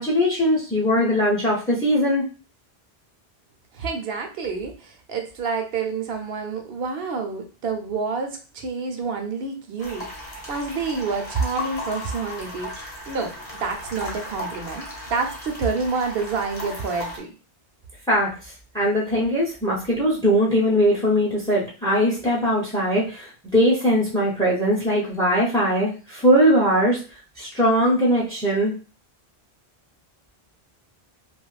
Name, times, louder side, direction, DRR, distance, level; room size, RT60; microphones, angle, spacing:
voice 1, 0.0-2.2 18.1-27.0 27.4-28.7, equal, 5° left, -4 dB, 0.5 m, -20 dB
voice 2, 3.7-17.3, right 4 dB, 70° right, 5 dB, 0.8 m, -28 dB
Water Cave, 9.8-17.2, left 1 dB, 40° left, 0.8 m, -36 dB
2.6 x 2.3 x 3.1 m, 0.35 s
omnidirectional pair, 1.1 m